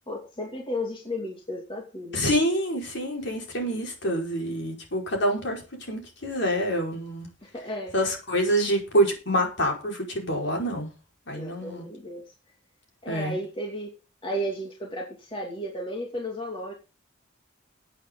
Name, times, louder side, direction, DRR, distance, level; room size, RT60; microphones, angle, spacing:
voice 1, 0.1-2.2 7.4-7.9 11.3-12.3 13.0-13.9 14.2-16.7, equal, 25° left, 0 dB, 2.5 m, -34 dB
voice 2, 2.1-7.3 7.9-10.9 11.3-11.9 13.1-13.3, equal, 60° left, 1 dB, 5.0 m, -26 dB
16.5 x 8.6 x 3.9 m, 0.32 s
head